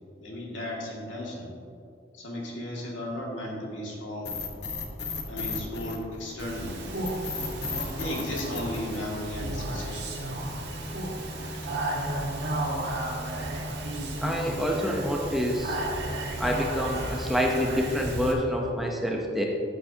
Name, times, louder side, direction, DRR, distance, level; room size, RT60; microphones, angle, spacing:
voice 1, 0.2-1.5 2.1-4.3 5.3-6.8 7.9-10.1, left 1 dB, 90° left, -3 dB, 2.2 m, -35 dB
sound 1, 4.2-6.5 7.0-9.5, left 4 dB, 65° left, 1.0 m, -34 dB
Speech, 6.4-18.3, right 1 dB, 65° right, 1.6 m, -33 dB
voice 2, 14.2-15.8 16.4-19.4, equal, ahead, -1 dB, 0.8 m, -27 dB
14.5 x 8.1 x 2.8 m, 2.6 s
head